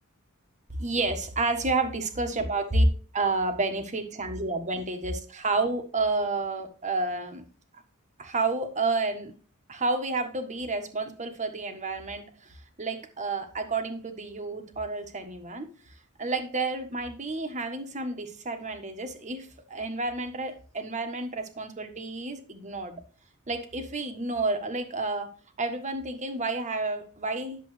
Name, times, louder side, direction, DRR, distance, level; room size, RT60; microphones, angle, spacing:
voice 1, 0.8-2.8 3.1-7.4 8.2-9.3 9.7-15.7 16.2-23.0 23.5-25.3 25.6-27.6, right 3 dB, 35° right, 6 dB, 1.5 m, -30 dB
11.0 x 7.4 x 3.3 m, 0.39 s
head